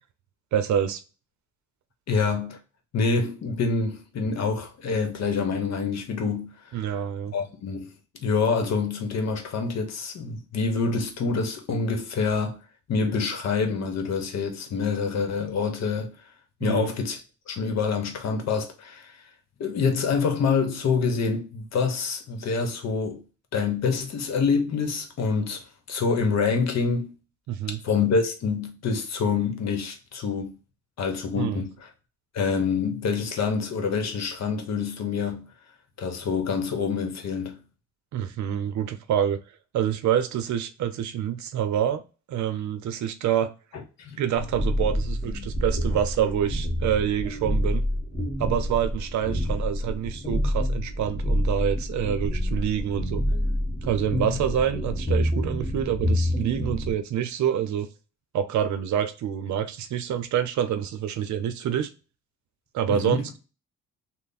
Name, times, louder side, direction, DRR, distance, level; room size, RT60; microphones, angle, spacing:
voice 1, 0.5-1.0 6.7-7.3 16.6-16.9 27.5-27.8 31.3-31.6 38.1-39.4 39.7-42.0 42.3-43.5 44.2-47.9 48.4-53.2 53.8-57.9 58.3-61.9 62.7-63.4, right 9 dB, 70° right, 0.6 m, -27 dB
voice 2, 2.1-2.6 2.9-6.5 7.3-7.9 8.2-12.6 12.9-16.1 16.6-19.1 19.6-23.2 23.5-27.1 27.8-30.6 31.0-31.7 32.3-35.5 36.0-37.6 43.7-44.2 62.9-63.2, left 5 dB, 60° left, 1.0 m, -26 dB
sound 1, 44.3-56.9, equal, 20° left, 1.4 m, -27 dB
3.3 x 2.1 x 4.0 m
cardioid pair, 90°, 30 cm